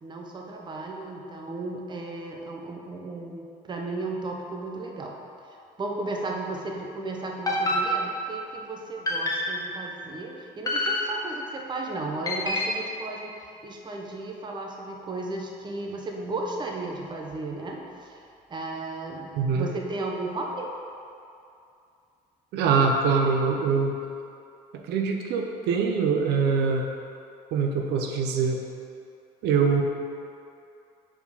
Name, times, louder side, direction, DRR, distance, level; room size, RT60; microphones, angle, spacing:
voice 1, 0.0-5.1 5.5-20.7, right 2 dB, 25° right, 0 dB, 0.8 m, -35 dB
sound 1, 7.5-8.4 9.1-9.7 10.7-11.5 12.3-12.9, left 1 dB, 20° left, 0.9 m, -27 dB
voice 2, 19.4-19.7 22.5-24.0 24.9-26.9 27.5-28.6 29.4-29.8, right 5 dB, 80° right, 2 dB, 0.6 m, -23 dB
4.8 x 4.4 x 5.2 m, 2.5 s
cardioid pair, 110°, 17 cm